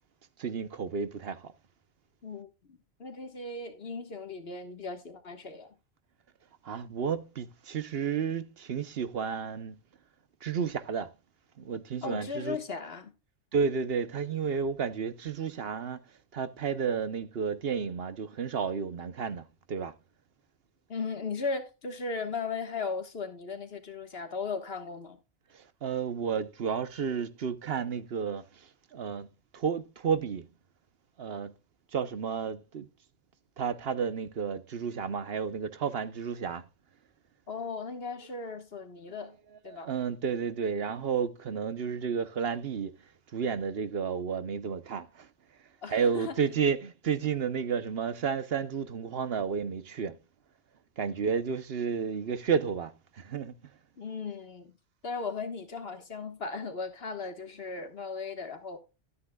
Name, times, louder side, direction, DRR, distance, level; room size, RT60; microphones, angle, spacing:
voice 1, 0.4-1.5 6.6-9.8 10.4-11.1 11.6-12.6 13.5-16.0 16.3-19.9 25.5-29.3 29.5-30.4 31.2-31.5 31.9-32.9 33.6-36.6 39.1-39.2 39.5-42.9 43.3-45.3 45.9-50.2 51.0-53.5, right 6 dB, 65° right, 1.0 m, -32 dB
voice 2, 2.2-5.7 12.0-13.1 20.9-25.2 37.5-39.3 39.6-39.9 45.8-46.4 54.0-54.7 55.0-58.8, left 4 dB, 65° left, 1.8 m, -37 dB
12.5 x 9.6 x 2.3 m
omnidirectional pair, 1.1 m